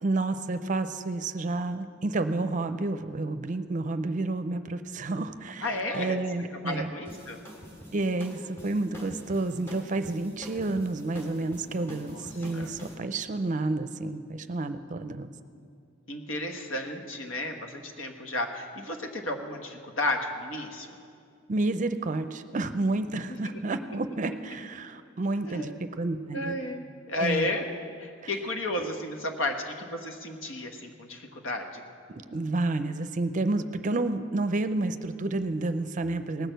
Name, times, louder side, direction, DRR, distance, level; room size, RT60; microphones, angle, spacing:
voice 1, 0.0-5.7 5.9-6.9 7.9-15.3 21.5-25.7 26.0-26.6 27.2-27.5 28.2-28.3 32.1-36.5, right 2 dB, 40° right, 10 dB, 0.5 m, -30 dB
voice 2, 5.6-6.2 6.6-7.4 11.8-12.3 12.5-12.7 16.1-21.0 23.3-23.8 24.3-24.4 25.3-25.8 26.3-27.7 28.0-31.8, left 1 dB, 80° left, 4 dB, 1.3 m, -33 dB
sound 1, 7.0-12.9, equal, 15° left, 2.5 m, -45 dB
18.5 x 6.5 x 7.9 m, 2.3 s
head